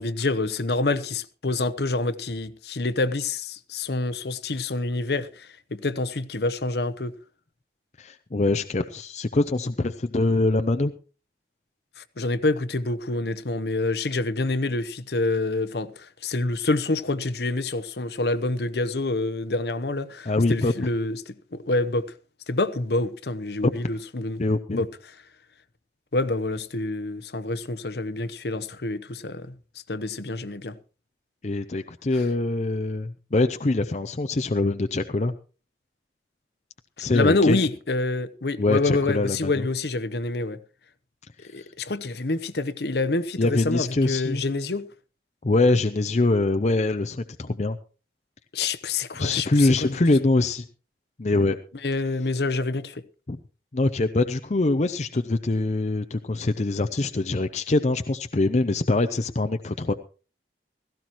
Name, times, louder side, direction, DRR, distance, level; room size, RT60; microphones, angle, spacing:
voice 1, 0.0-7.2 12.0-22.1 22.5-24.4 24.7-24.9 26.1-29.6 29.9-30.8 32.2-32.3 37.1-40.6 41.4-44.9 48.5-50.0 51.8-53.0, left 2 dB, 65° left, 0.9 m, -27 dB
voice 2, 8.0-10.9 20.3-20.7 23.6-23.7 24.4-24.8 31.4-35.3 37.0-37.6 38.6-39.6 43.4-44.4 45.4-47.8 49.2-50.6 51.2-51.6 53.3-53.4 53.7-59.9, left 2 dB, 40° left, 0.6 m, -23 dB
16.5 x 15.5 x 3.0 m
head